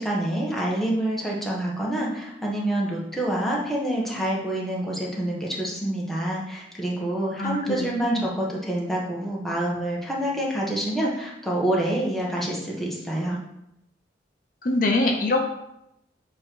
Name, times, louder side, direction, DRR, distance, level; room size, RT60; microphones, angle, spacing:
voice 1, 0.0-13.4, right 1 dB, ahead, -4 dB, 1.2 m, -27 dB
voice 2, 7.4-8.3 14.6-15.5, left 2 dB, 50° left, 2 dB, 0.7 m, -24 dB
7.3 x 3.1 x 4.5 m, 0.81 s
head